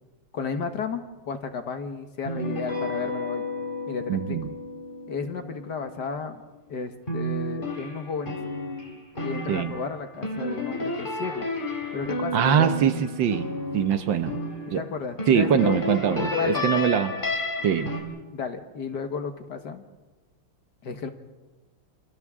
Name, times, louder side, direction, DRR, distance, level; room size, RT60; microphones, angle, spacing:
voice 1, 0.3-3.4 3.9-4.4 5.1-6.4 6.7-8.4 9.2-11.5 11.9-12.7 14.7-15.8 16.2-17.0 18.3-19.8 20.8-21.1, left 5 dB, 55° left, 7 dB, 1.8 m, -33 dB
sound 1, 2.2-6.6 7.1-14.8 15.2-18.0, left 1 dB, 25° left, 2.8 m, -32 dB
voice 2, 4.1-4.5 9.5-9.7 12.3-13.5 13.7-14.4 14.7-14.8 15.3-17.1 17.6-17.9, right 8 dB, 65° right, 10 dB, 1.6 m, -23 dB
28.5 x 28.0 x 3.7 m, 1.2 s
omnidirectional pair, 2.3 m